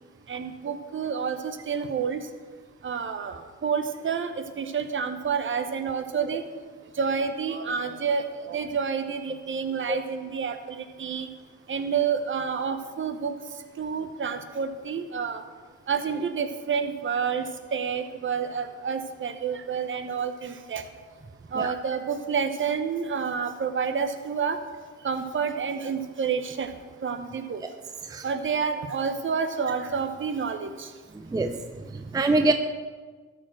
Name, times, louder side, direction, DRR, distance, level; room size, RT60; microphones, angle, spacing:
voice 1, 0.3-2.2 2.8-6.4 6.9-11.3 11.7-13.3 13.8-15.4 15.9-20.8 21.5-24.6 25.0-26.7 27.0-27.6 28.2-30.9, right 6 dB, 40° right, 8 dB, 0.9 m, -29 dB
voice 2, 31.2-31.6 31.9-32.5, right 2 dB, 10° right, 7 dB, 0.5 m, -24 dB
13.5 x 4.5 x 6.1 m, 1.4 s
cardioid pair, 90°, 30 cm